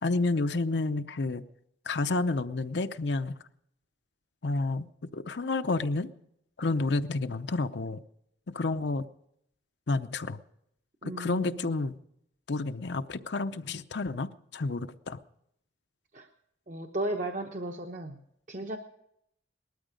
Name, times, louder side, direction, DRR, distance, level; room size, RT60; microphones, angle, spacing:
voice 1, 0.0-1.4 1.9-3.3 4.4-6.1 6.6-8.0 8.5-9.1 9.9-10.4 11.0-12.0 12.5-15.2, left 3 dB, 70° left, 9 dB, 0.7 m, -30 dB
voice 2, 11.0-11.7 16.1-16.3 16.7-18.2 18.5-18.8, right 1 dB, 45° right, 4 dB, 1.0 m, -35 dB
19.5 x 13.0 x 5.1 m, 0.76 s
head